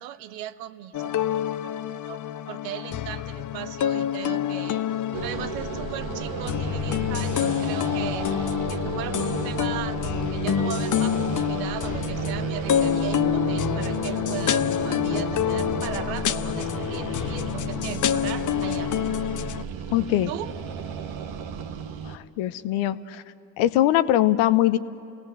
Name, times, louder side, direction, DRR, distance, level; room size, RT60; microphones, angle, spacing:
voice 1, 0.0-1.8 2.1-2.2 2.5-4.8 5.2-8.3 8.7-18.9 20.3-20.5, right 12 dB, 85° right, 13 dB, 0.8 m, -37 dB
sound 1, 0.9-19.6, left 11 dB, 40° left, 0.6 m, -27 dB
sound 2, 5.1-22.2, right 7 dB, 65° right, 1.3 m, -33 dB
voice 2, 19.9-20.3 22.0-23.2 23.6-24.8, left 14 dB, 70° left, 14 dB, 0.9 m, -22 dB
28.5 x 18.0 x 8.1 m, 2.7 s
hypercardioid pair, 50°, 49 cm